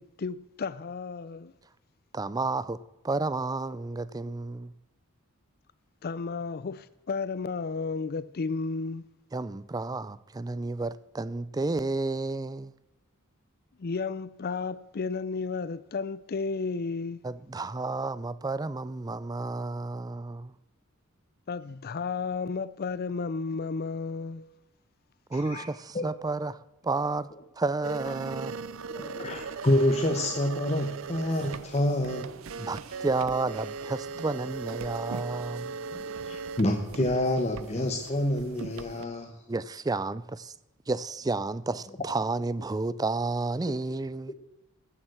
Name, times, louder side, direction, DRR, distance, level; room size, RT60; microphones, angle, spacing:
voice 1, 0.0-1.5 6.0-9.0 13.8-17.2 21.5-24.4, left 4 dB, 45° left, 0.5 m, -33 dB
voice 2, 2.1-2.8 3.0-4.7 9.3-12.7 17.2-20.5 25.3-27.3 27.6-28.6 32.6-35.8 39.5-40.5 40.9-44.3, right 3 dB, 20° right, 0.4 m, -31 dB
voice 3, 25.3-25.6 25.9-26.1 28.9-32.4 36.3-39.3 44.3-44.4, left 1 dB, 30° left, 1.0 m, -27 dB
sound 1, 27.8-39.0, right 4 dB, 65° right, 0.6 m, -38 dB
14.0 x 7.4 x 6.2 m
head